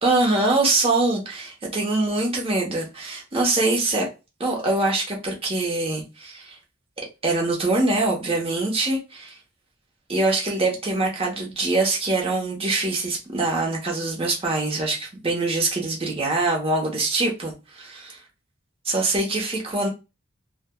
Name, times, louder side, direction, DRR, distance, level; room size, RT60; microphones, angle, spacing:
voice 1, 0.0-4.1 4.4-6.6 7.2-9.4 10.1-17.9 18.8-19.9, right 2 dB, 30° right, 0.9 m, -23 dB
3.3 x 2.2 x 2.2 m
head